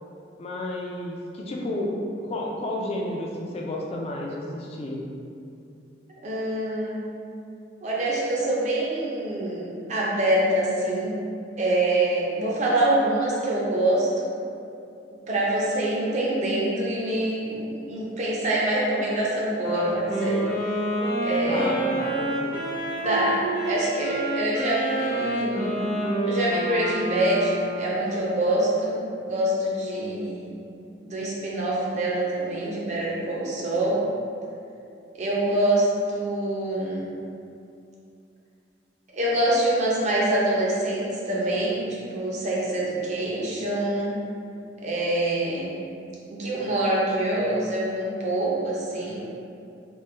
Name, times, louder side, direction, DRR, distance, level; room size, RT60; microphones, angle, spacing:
voice 1, 0.4-5.0 21.4-22.6, left 1 dB, 30° left, -1 dB, 0.3 m, -31 dB
voice 2, 6.2-7.1 7.8-11.2 11.6-14.3 15.3-20.4 21.2-21.7 23.0-25.8 26.2-30.5 31.0-34.0 35.2-37.0 39.1-44.2 44.8-45.8 46.3-49.2, right 1 dB, 40° right, -5 dB, 0.5 m, -25 dB
Wind instrument woodwind instrument, 19.6-27.9, right 1 dB, 85° left, 0.9 m, -28 dB
3.1 x 2.1 x 3.2 m, 2.5 s
head